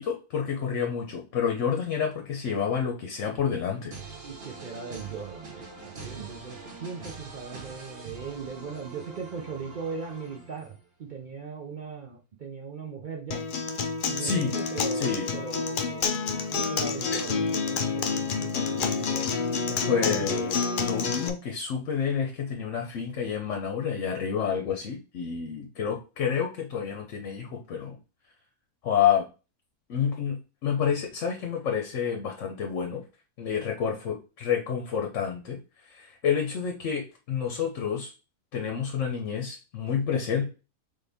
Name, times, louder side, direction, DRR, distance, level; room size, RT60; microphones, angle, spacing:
voice 1, 0.0-3.9 14.2-14.5 14.9-15.3 19.9-28.0 28.8-29.3 29.9-33.0 33.4-35.6 35.9-38.1 38.5-40.4, left 7 dB, 60° left, 2 dB, 1.0 m, -29 dB
sound 1, 3.9-10.9, right 4 dB, 45° right, 1.1 m, -44 dB
voice 2, 4.2-5.6 6.0-10.7 11.0-13.4 14.1-16.2 16.5-19.3 19.7-20.3, right 5 dB, 60° right, 0 dB, 0.5 m, -39 dB
Acoustic guitar, 13.3-21.3, left 5 dB, 75° left, 0.4 m, -28 dB
4.0 x 3.6 x 3.4 m, 0.32 s
omnidirectional pair, 1.6 m